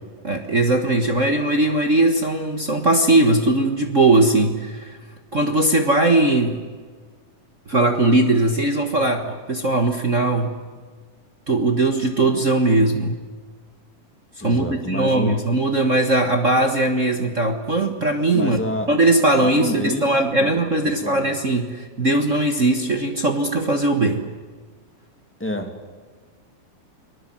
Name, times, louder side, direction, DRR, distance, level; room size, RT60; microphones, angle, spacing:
voice 1, 0.2-5.0 5.3-6.6 7.7-10.5 11.5-13.2 14.4-18.6 18.9-24.2, right 2 dB, 45° right, 5 dB, 1.0 m, -19 dB
voice 2, 14.4-15.4 18.3-18.9 19.4-20.1 20.4-20.6 20.8-21.2 25.4-25.7, left 1 dB, 5° left, 4 dB, 2.0 m, -28 dB
29.5 x 20.5 x 7.6 m, 1.5 s
omnidirectional pair, 3.7 m